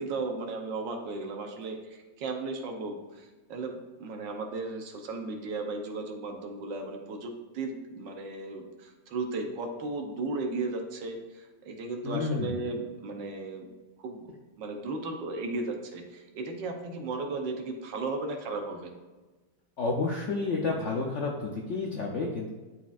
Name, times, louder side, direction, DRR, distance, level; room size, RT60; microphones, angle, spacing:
voice 1, 0.0-13.7 14.0-14.3 14.6-18.9, right 3 dB, 75° right, 3 dB, 1.5 m, -35 dB
voice 2, 12.0-12.6 19.8-22.5, left 3 dB, 65° left, 0 dB, 0.7 m, -30 dB
11.5 x 4.2 x 2.5 m, 1.2 s
omnidirectional pair, 2.1 m